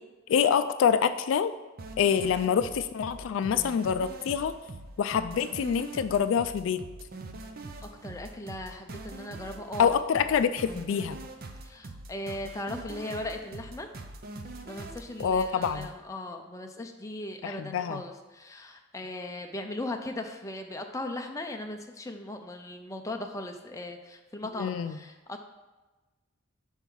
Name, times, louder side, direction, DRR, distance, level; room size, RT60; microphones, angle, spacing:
voice 1, 0.3-1.5 2.0-4.5 5.0-6.8 9.8-11.2 15.2-15.9 17.4-18.0 24.6-25.0, left 7 dB, 75° left, 12 dB, 0.3 m, -26 dB
sound 1, 1.8-15.9, right 2 dB, 50° right, 0.6 m, -43 dB
voice 2, 7.8-9.9 11.6-13.9 14.6-25.5, left 1 dB, 15° left, 4 dB, 0.5 m, -38 dB
5.4 x 4.5 x 6.1 m, 1.2 s
head